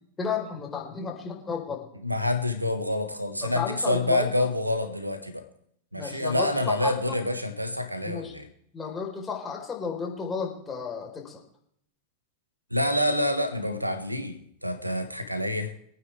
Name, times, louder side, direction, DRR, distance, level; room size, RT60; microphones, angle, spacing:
voice 1, 0.2-1.9 3.4-4.4 5.9-7.2 8.0-8.3 8.7-11.4, left 6 dB, 15° left, 4.0 m, -33 dB
voice 2, 2.0-5.4 5.9-8.5 12.7-15.7, left 1 dB, 85° right, 1.4 m, -27 dB
25.0 x 9.3 x 3.4 m
figure-of-eight pair, 90°, 0 cm